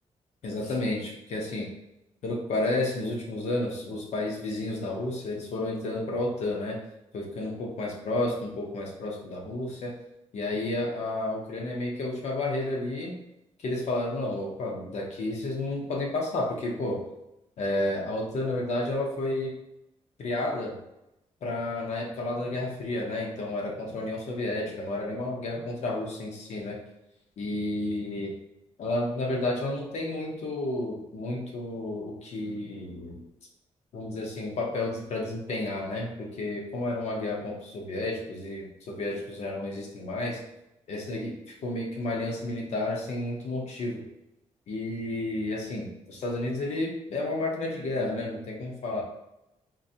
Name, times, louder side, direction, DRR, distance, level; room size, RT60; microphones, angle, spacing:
voice 1, 0.4-1.7 2.2-6.8 7.1-9.9 10.3-13.1 13.6-17.0 17.6-19.5 20.2-20.7 21.4-26.8 27.4-28.3 28.8-33.2 33.9-40.4 40.9-44.0 44.7-49.0, left 2 dB, 65° left, -1 dB, 0.7 m, -31 dB
3.8 x 2.6 x 2.7 m, 0.89 s
wide cardioid pair, 165°, 12 cm